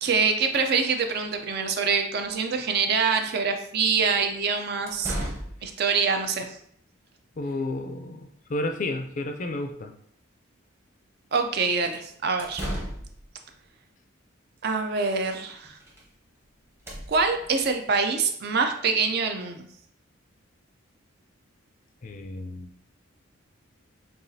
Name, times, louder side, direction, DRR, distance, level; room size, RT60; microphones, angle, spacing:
voice 1, 0.0-5.2 5.6-6.5 11.3-12.6 14.6-15.8 17.1-19.7, right 5 dB, 50° right, 6 dB, 0.4 m, -25 dB
sound 1, 4.2-4.3 4.9-5.7 12.2-13.3 15.1-15.2 15.5-16.1 16.4-16.5 16.7-18.0, equal, 10° right, 0.8 m, -36 dB
voice 2, 7.4-9.9 22.0-22.7, left 2 dB, 35° left, 5 dB, 0.4 m, -32 dB
6.7 x 2.4 x 2.6 m, 0.66 s
head